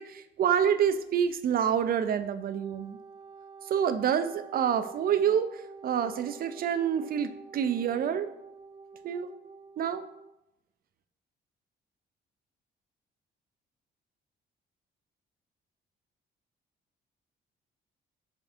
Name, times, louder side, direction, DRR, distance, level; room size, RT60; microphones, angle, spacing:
voice 1, 0.0-3.0 3.7-8.3 9.0-9.3 9.8-10.0, right 8 dB, 50° right, 10 dB, 0.4 m, -27 dB
Wind instrument woodwind instrument, 2.4-10.3, right 4 dB, 20° right, 1.0 m, -48 dB
5.3 x 2.7 x 2.4 m, 0.85 s
cardioid pair, 90°, 20 cm